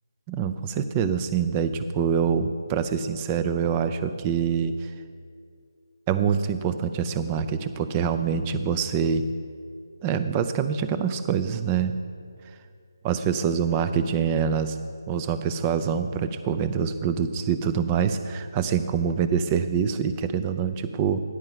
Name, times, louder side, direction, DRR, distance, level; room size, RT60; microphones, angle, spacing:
voice 1, 0.3-4.9 6.1-9.2 10.0-12.0 13.0-14.8 15.1-21.2, right 7 dB, 15° right, 10 dB, 0.4 m, -25 dB
9.7 x 5.4 x 7.3 m, 2.2 s
figure-of-eight pair, 160°, 2 cm